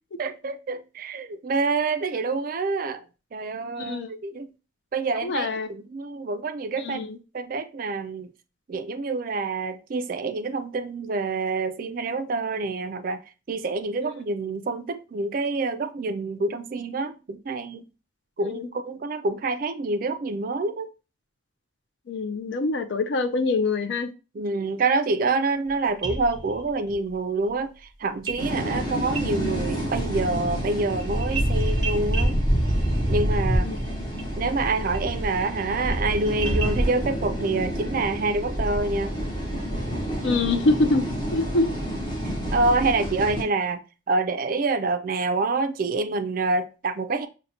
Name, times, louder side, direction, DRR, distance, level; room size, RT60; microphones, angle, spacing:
voice 1, 0.2-3.0 3.3-4.5 4.9-7.0 7.3-8.3 8.7-13.2 13.5-17.9 18.4-20.9 24.3-32.4 33.1-33.7 34.4-39.1 42.5-43.8 44.1-47.3, right 3 dB, 45° right, 0.3 m, -27 dB
voice 2, 3.8-4.1 5.2-5.7 6.8-7.2 14.0-14.1 18.4-18.7 22.1-24.1 33.6-33.8 40.2-41.0 41.3-41.7, left 3 dB, 60° left, 0.4 m, -24 dB
sound 1, 25.7-25.8 26.0-27.0 28.3-28.4 28.7-29.7 30.0-37.0, right 2 dB, 20° right, 0.7 m, -33 dB
sound 2, 28.4-43.4, equal, 20° left, 0.8 m, -27 dB
5.4 x 2.1 x 2.7 m
head